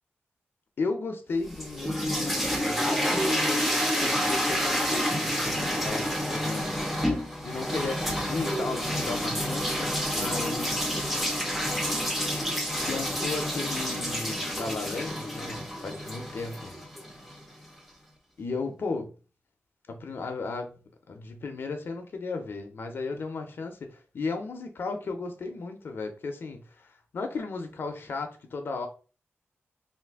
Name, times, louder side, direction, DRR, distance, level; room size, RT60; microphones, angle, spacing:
voice 1, 0.8-3.7 3.9-6.7 7.4-10.8 12.8-16.7 17.2-17.3 18.4-19.1 19.9-20.8 21.1-28.9, left 4 dB, 55° left, 5 dB, 0.4 m, -35 dB
sound 1, 1.4-17.4, equal, 5° right, 0.5 m, -29 dB
2.6 x 2.4 x 3.4 m, 0.36 s
wide cardioid pair, 165°, 4 cm